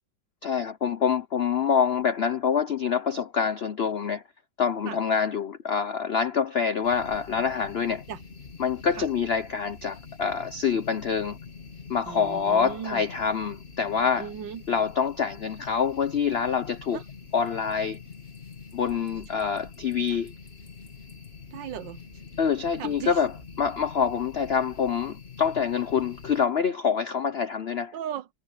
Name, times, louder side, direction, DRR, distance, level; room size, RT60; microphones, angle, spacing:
voice 1, 0.4-4.2 4.6-8.0 8.6-11.4 11.9-14.3 14.7-17.0 17.3-18.0 18.7-20.3 22.4-23.3 23.6-27.9, left 6 dB, 70° left, 0.5 m, -26 dB
sound 1, 6.8-26.5, left 5 dB, 35° left, 2.3 m, -45 dB
voice 2, 12.1-13.0 14.2-14.6 16.9-17.0 19.3-19.4 21.5-22.0 22.8-23.2 27.9-28.3, right 9 dB, 75° right, 1.6 m, -37 dB
omnidirectional pair, 2.0 m